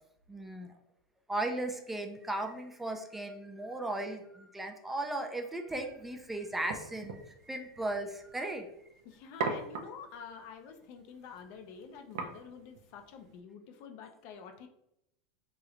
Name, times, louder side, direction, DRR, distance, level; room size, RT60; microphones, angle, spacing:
voice 1, 0.3-0.7 1.3-8.7, right 2 dB, 10° right, 4 dB, 0.4 m, -36 dB
sound 1, 5.7-13.4, right 4 dB, 80° right, 0.5 m, -43 dB
voice 2, 9.0-14.7, left 6 dB, 60° left, 5 dB, 0.5 m, -48 dB
3.0 x 3.0 x 2.4 m, 0.82 s
supercardioid pair, 115°, 2 cm